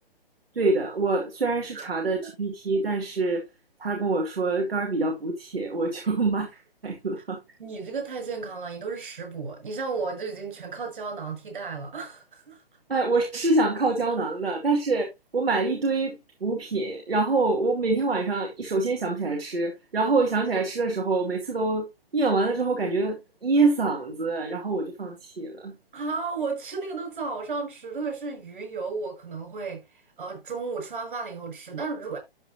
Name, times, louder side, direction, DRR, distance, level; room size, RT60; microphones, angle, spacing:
voice 1, 0.5-3.4 3.8-7.4 12.9-15.1 15.3-16.2 16.4-21.9 22.1-25.8, right 3 dB, 75° right, 2.6 m, -25 dB
voice 2, 7.6-12.6 25.9-29.8 30.2-32.2, right 4 dB, 60° right, 6.8 m, -33 dB
12.5 x 6.0 x 2.8 m
figure-of-eight pair, 135°, 30 cm